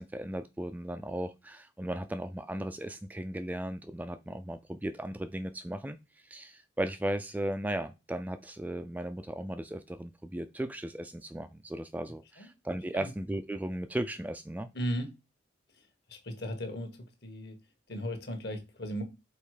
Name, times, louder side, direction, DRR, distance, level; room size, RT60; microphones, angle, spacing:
voice 1, 0.0-6.0 6.2-14.7, right 1 dB, 10° right, 0.3 m, -36 dB
voice 2, 14.7-15.1 15.7-15.8 16.1-16.9 17.2-17.6 17.9-19.0, equal, 60° left, 1.5 m, -36 dB
5.5 x 4.1 x 4.9 m
head